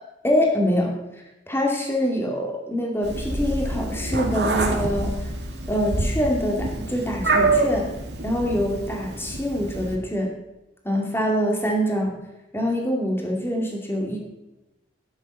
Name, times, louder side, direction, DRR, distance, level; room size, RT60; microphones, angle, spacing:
voice 1, 0.2-0.9 1.5-5.3 5.7-7.9 8.2-10.3 10.8-12.2 12.5-14.2, equal, 15° left, 0 dB, 2.3 m, -24 dB
Meow, 3.0-9.9, right 2 dB, 70° right, 2.1 m, -26 dB
13.0 x 9.9 x 5.5 m, 1.0 s
head